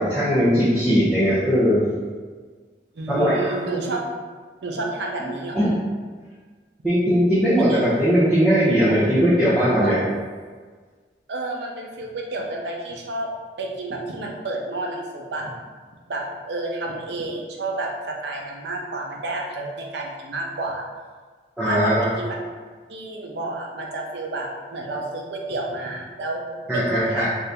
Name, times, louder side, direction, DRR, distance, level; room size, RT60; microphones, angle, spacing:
voice 1, 0.0-1.9 3.1-3.3 5.5-5.7 6.8-10.1 21.6-22.1 26.7-27.3, equal, 5° right, -13 dB, 0.6 m, -19 dB
voice 2, 2.9-4.0 4.6-5.6 7.7-7.9 9.8-10.0 11.3-13.3 13.6-15.5 16.1-20.8 21.6-22.4 22.9-26.4 26.7-27.3, right 2 dB, 80° right, -1 dB, 0.6 m, -30 dB
2.8 x 2.5 x 3.4 m, 1.5 s
head